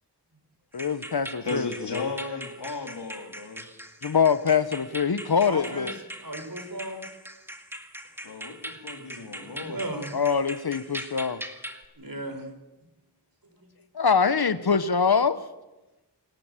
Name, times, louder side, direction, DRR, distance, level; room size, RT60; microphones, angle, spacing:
voice 1, 0.7-2.1 4.0-5.9 10.1-11.4 13.9-15.4, left 6 dB, 65° left, 0.9 m, -24 dB
sound 1, 0.7-11.9, equal, 5° right, 2.1 m, -41 dB
voice 2, 1.4-3.6 8.2-9.8, left 3 dB, 85° left, 2.8 m, -35 dB
voice 3, 5.4-5.9 6.2-7.0 9.2-10.1 12.0-12.5 13.6-13.7, right 1 dB, 55° right, 4.7 m, -36 dB
28.0 x 12.0 x 8.9 m
wide cardioid pair, 50°, 40 cm